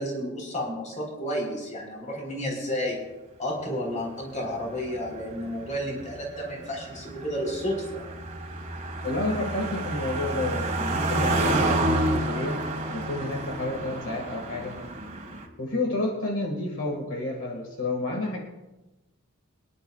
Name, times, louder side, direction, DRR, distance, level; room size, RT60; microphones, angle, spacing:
voice 1, 0.0-3.0 3.4-8.1, equal, 35° left, -1 dB, 4.0 m, -31 dB
Car passing by, 4.3-15.5, right 2 dB, 35° right, 1.8 m, -30 dB
voice 2, 9.0-12.6 12.9-14.8 15.6-18.4, left 2 dB, 65° left, -1 dB, 1.9 m, -30 dB
25.5 x 10.5 x 2.4 m, 1.0 s
head